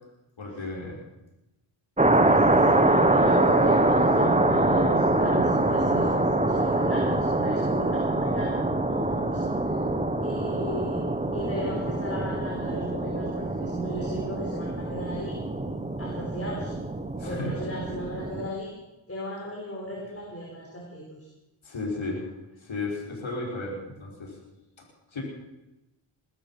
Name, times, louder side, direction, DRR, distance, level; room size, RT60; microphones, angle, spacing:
voice 1, 0.4-1.0 2.2-2.4 17.2-17.6 21.6-22.3 22.6-24.3 25.1-25.2, left 2 dB, 70° left, -2 dB, 5.1 m, -34 dB
sound 1, 2.0-18.5, right 2 dB, 15° right, 1.4 m, -24 dB
voice 2, 2.3-9.5 10.2-11.0 11.3-15.3 16.0-16.7 17.2-18.7 19.1-21.3, equal, 30° left, -3 dB, 4.9 m, -36 dB
20.5 x 12.5 x 5.7 m, 0.98 s
cardioid pair, 60°, 48 cm